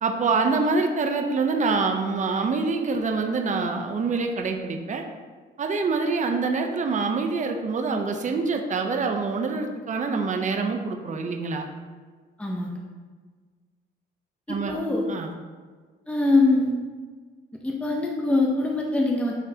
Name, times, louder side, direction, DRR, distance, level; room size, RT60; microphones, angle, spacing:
voice 1, 0.0-5.0 5.6-11.7 14.5-14.8 15.1-15.3, right 4 dB, 40° right, 4 dB, 0.7 m, -25 dB
voice 2, 12.4-12.8 14.5-15.1 16.1-16.7 17.6-19.3, left 2 dB, 5° left, -1 dB, 0.8 m, -23 dB
9.1 x 3.7 x 2.8 m, 1.5 s
cardioid pair, 90°, 20 cm